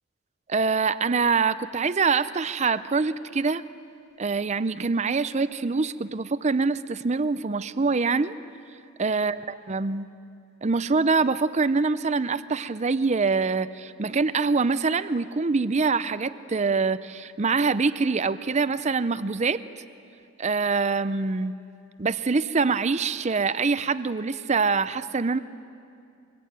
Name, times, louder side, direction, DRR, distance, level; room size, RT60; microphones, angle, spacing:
voice 1, 0.5-3.6 4.2-8.3 9.0-9.4 9.7-10.1 10.6-19.6 20.4-21.5 22.0-25.4, right 4 dB, 35° right, 14 dB, 0.5 m, -24 dB
24.0 x 23.5 x 9.4 m, 2.5 s
head